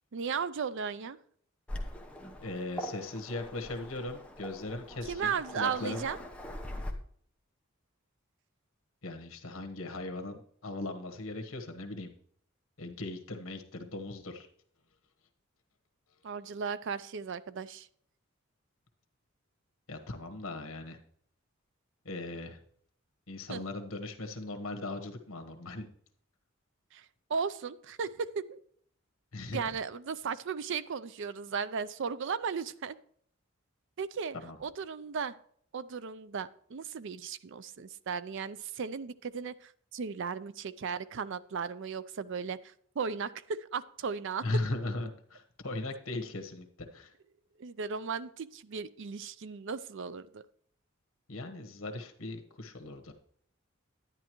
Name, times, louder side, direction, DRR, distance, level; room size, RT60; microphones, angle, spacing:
voice 1, 0.1-1.2 5.1-6.2 16.2-17.9 23.5-23.6 26.9-27.0 27.3-28.6 29.5-33.0 34.0-34.4 34.6-35.3 35.7-44.4 47.6-50.4, right 6 dB, 65° right, 15 dB, 0.5 m, -36 dB
Waves surf, 1.7-6.9, left 1 dB, 5° left, 0.9 m, -42 dB
voice 2, 2.4-6.1 9.0-12.1 12.8-14.5 19.9-21.0 22.0-22.6 23.3-25.9 29.3-29.6 34.3-34.6 44.4-47.1 51.3-53.1, left 2 dB, 85° left, 5 dB, 1.2 m, -38 dB
10.5 x 9.9 x 3.1 m, 0.62 s
head